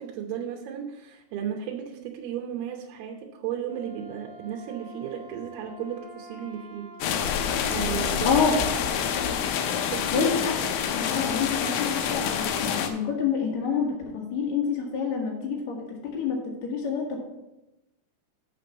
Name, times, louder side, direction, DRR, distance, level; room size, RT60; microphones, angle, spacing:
voice 1, 0.0-6.9 7.7-8.3 9.9-10.3, right 9 dB, 80° right, 1 dB, 2.7 m, -34 dB
Wind instrument woodwind instrument, 3.6-7.7, right 1 dB, 25° left, 1.6 m, -48 dB
sound 1, 7.0-12.9, left 8 dB, 80° left, 2.2 m, -27 dB
voice 2, 10.1-10.5 10.9-17.2, left 6 dB, 55° left, -2 dB, 2.2 m, -27 dB
6.4 x 6.0 x 6.8 m, 0.96 s
omnidirectional pair, 4.7 m